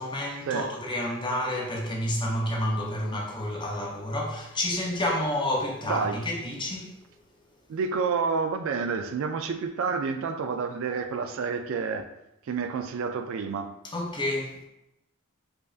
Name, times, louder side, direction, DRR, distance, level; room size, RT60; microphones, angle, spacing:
voice 1, 0.0-7.0 13.9-14.6, left 1 dB, 20° left, 0.6 m, -29 dB
voice 2, 5.9-6.2 7.7-12.1 12.5-13.7, right 5 dB, 60° right, 0.3 m, -29 dB
5.0 x 2.5 x 2.4 m
head